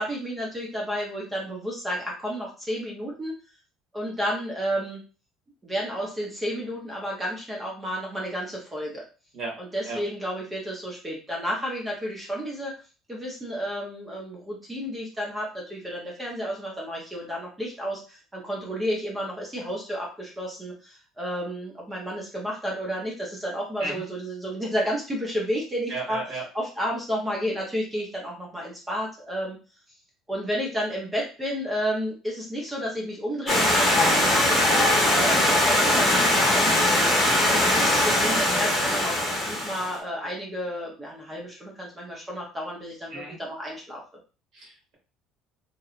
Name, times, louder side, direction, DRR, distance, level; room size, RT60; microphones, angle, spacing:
voice 1, 0.0-3.3 3.9-5.0 5.6-9.0 9.6-12.7 13.1-26.2 26.5-29.6 30.3-36.9 37.5-44.0, equal, 10° right, -2 dB, 0.6 m, -31 dB
voice 2, 25.9-26.4 43.1-43.4 44.5-44.9, right 2 dB, 45° right, -2 dB, 1.2 m, -34 dB
Stream, 33.5-39.9, left 1 dB, 10° left, 1.0 m, -21 dB
2.9 x 2.2 x 2.4 m, 0.35 s
cardioid pair, 175°, 0 cm